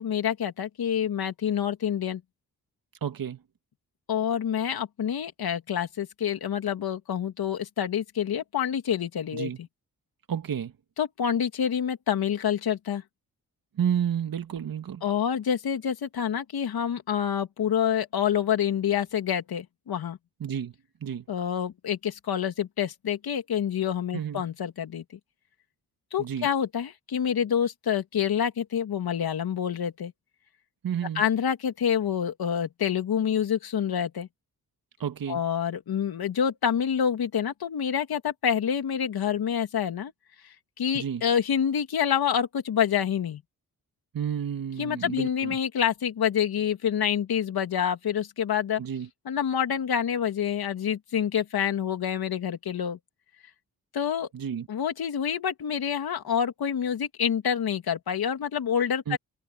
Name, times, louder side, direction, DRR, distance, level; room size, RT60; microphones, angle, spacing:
voice 1, 0.0-2.2 4.1-9.7 11.0-13.0 15.0-20.2 21.3-25.0 26.1-30.1 31.1-34.3 35.3-40.1 40.4-43.4 44.8-48.8 49.2-53.0 53.9-54.3 54.7-59.2, left 8 dB, 80° left, 2.8 m, -27 dB
voice 2, 3.0-3.4 9.3-9.6 10.3-10.7 13.8-15.0 20.4-20.7 21.0-21.2 24.1-24.4 26.2-26.5 30.8-31.2 35.0-35.4 40.9-41.2 44.1-45.6 48.8-49.1 54.3-54.7 59.1-59.2, right 8 dB, 65° right, 2.0 m, -30 dB
cardioid pair, 75°, 36 cm